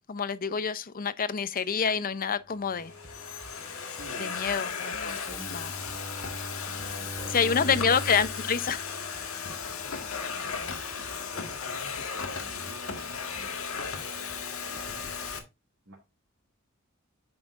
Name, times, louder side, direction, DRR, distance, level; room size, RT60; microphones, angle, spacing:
voice 1, 0.1-2.9 4.2-5.1 5.5-5.7 7.3-8.9, left 6 dB, 40° left, 0.6 m, -27 dB
Domestic sounds home sounds, 1.6-2.0 2.7-15.4, left 6 dB, 80° left, 1.6 m, -36 dB
sound 1, 2.7-15.4, right 1 dB, 35° right, 0.9 m, -51 dB
voice 2, 4.0-5.5 6.6-8.1 9.6-10.7 11.3-15.3 15.9-16.0, right 2 dB, 65° right, 2.3 m, -49 dB
Bowed string instrument, 5.2-9.6, right 1 dB, 25° left, 1.8 m, -40 dB
8.7 x 6.0 x 2.5 m
head